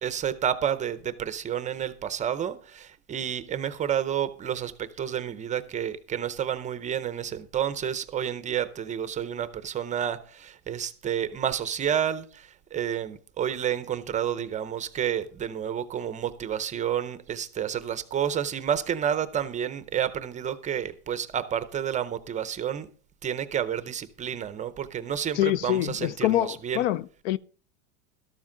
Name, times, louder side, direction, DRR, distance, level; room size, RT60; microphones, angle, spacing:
voice 1, 0.0-22.9 23.2-26.8, right 9 dB, 20° right, 0.6 m, -30 dB
voice 2, 25.4-27.4, left 14 dB, 55° left, 0.5 m, -25 dB
13.0 x 12.0 x 3.8 m
supercardioid pair, 155°, 42 cm